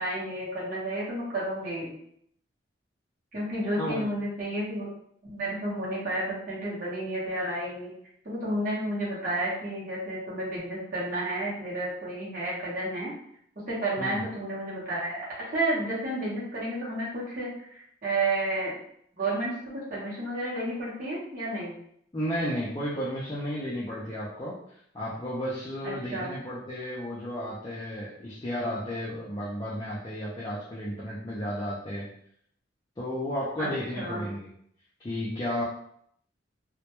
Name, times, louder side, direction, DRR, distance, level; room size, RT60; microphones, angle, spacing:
voice 1, 0.0-1.9 3.3-4.9 5.3-7.9 8.2-13.1 13.7-15.2 15.5-18.8 19.1-19.5 19.9-21.7 25.8-26.3 33.6-34.3, right 1 dB, 45° right, -8 dB, 0.7 m, -31 dB
voice 2, 3.8-4.1 14.0-14.2 22.1-32.1 33.0-34.4 35.0-35.6, equal, 20° left, -7 dB, 0.4 m, -33 dB
2.1 x 2.1 x 2.9 m, 0.70 s
head